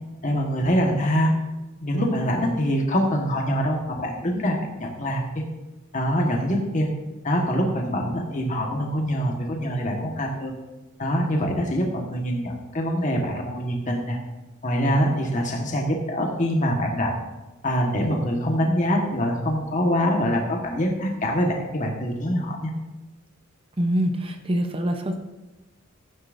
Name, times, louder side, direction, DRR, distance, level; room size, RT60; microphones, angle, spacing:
voice 1, 0.2-1.3 1.8-5.4 5.9-6.9 7.2-10.5 11.0-14.2 14.6-17.2 17.6-22.7, equal, 35° left, 1 dB, 1.4 m, -24 dB
voice 2, 23.8-25.2, equal, 25° right, 5 dB, 0.8 m, -24 dB
15.5 x 9.4 x 2.6 m, 1.1 s
head